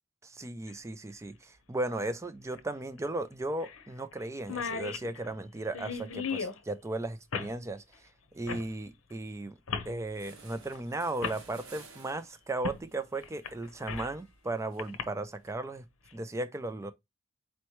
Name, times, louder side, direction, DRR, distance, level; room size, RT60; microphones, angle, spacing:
voice 1, 0.2-7.8 8.3-9.6 9.9-15.8 16.1-16.9, right 2 dB, 15° right, 0.4 m, -36 dB
sound 1, 0.7-0.8 2.5-2.6 3.0-3.1 3.6-3.8 4.1-4.2 4.4-6.6 7.3-7.5 8.5-8.7 9.7-9.9 10.8-10.9 11.2-11.4 12.6-12.8 13.2-14.2 14.8-15.0, left 5 dB, 75° left, 0.7 m, -36 dB
sound 2, 9.7-9.8 10.1-15.5, right 4 dB, 75° right, 1.2 m, -56 dB
4.3 x 2.9 x 3.1 m
head